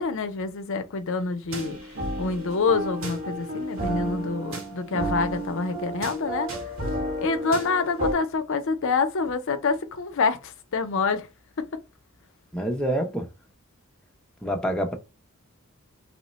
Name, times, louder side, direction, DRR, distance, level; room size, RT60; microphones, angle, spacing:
voice 1, 0.0-1.8 2.2-6.5 7.2-11.3 11.6-11.7, left 4 dB, 60° left, 0.5 m, -26 dB
sound 1, 1.5-8.1, right 1 dB, 65° right, 1.3 m, -31 dB
voice 2, 12.5-13.3 14.4-14.9, right 1 dB, 5° left, 0.5 m, -26 dB
3.0 x 2.1 x 3.9 m
head